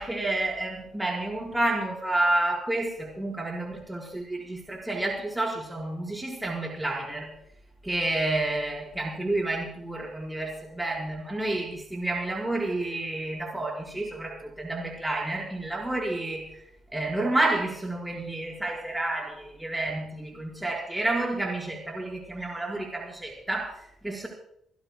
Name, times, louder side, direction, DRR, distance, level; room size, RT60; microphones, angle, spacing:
voice 1, 0.0-7.3 7.8-16.5 16.9-24.3, right 2 dB, 10° right, -1 dB, 5.1 m, -30 dB
28.5 x 16.5 x 2.4 m, 0.73 s
cardioid pair, 90°, 0 cm